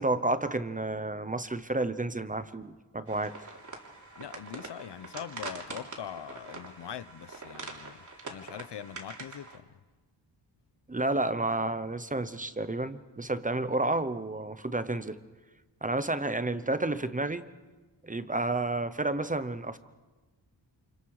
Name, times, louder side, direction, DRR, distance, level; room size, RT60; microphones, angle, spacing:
voice 1, 0.0-3.4 10.9-15.2 15.8-17.5 18.0-19.8, right 2 dB, 20° right, 0.8 m, -30 dB
sound 1, 3.1-9.6, right 3 dB, 40° right, 3.3 m, -44 dB
voice 2, 4.2-9.7, left 9 dB, 65° left, 0.9 m, -42 dB
29.0 x 28.5 x 4.9 m
wide cardioid pair, 165°, 44 cm